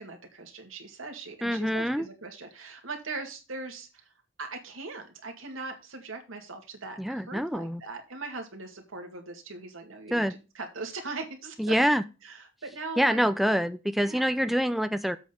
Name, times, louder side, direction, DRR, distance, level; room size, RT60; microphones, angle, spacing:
voice 1, 0.0-4.1 4.4-10.3 10.5-11.7 12.2-13.2 14.0-14.2, right 3 dB, 90° right, 3 dB, 2.2 m, -40 dB
voice 2, 1.4-2.1 7.0-7.8 10.1-10.4 11.6-12.0 13.0-15.2, equal, ahead, 11 dB, 0.3 m, -26 dB
7.9 x 4.2 x 6.8 m, 0.30 s
head